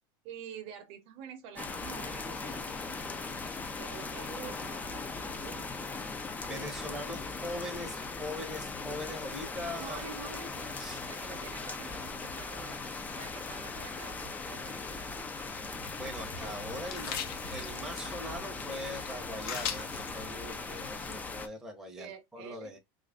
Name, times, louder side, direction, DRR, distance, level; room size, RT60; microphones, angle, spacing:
voice 1, 0.2-2.8 3.8-5.7 9.6-15.4 22.0-22.8, right 7 dB, 50° right, 0.8 m, -48 dB
sound 1, 1.5-21.5, left 3 dB, 15° left, 0.4 m, -39 dB
voice 2, 6.5-10.0 10.8-11.0 15.9-17.2 17.5-22.8, left 1 dB, 5° right, 0.8 m, -41 dB
sound 2, 15.8-21.2, left 7 dB, 75° left, 0.9 m, -42 dB
3.0 x 2.5 x 3.5 m
supercardioid pair, 150°, 13 cm